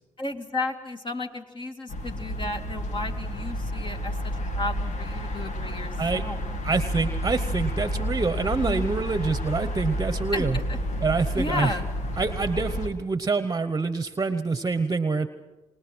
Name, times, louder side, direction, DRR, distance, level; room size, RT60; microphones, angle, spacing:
voice 1, 0.2-6.4 8.6-8.9 10.3-10.8 11.3-11.9, left 2 dB, 40° left, 4 dB, 2.4 m, -33 dB
sound 1, 1.9-12.9, equal, 85° left, 2.2 m, -30 dB
voice 2, 6.6-10.6 11.0-11.8 12.2-15.3, right 4 dB, 30° right, 11 dB, 1.0 m, -26 dB
25.5 x 20.0 x 6.2 m, 1.1 s
cardioid pair, 70°, 12 cm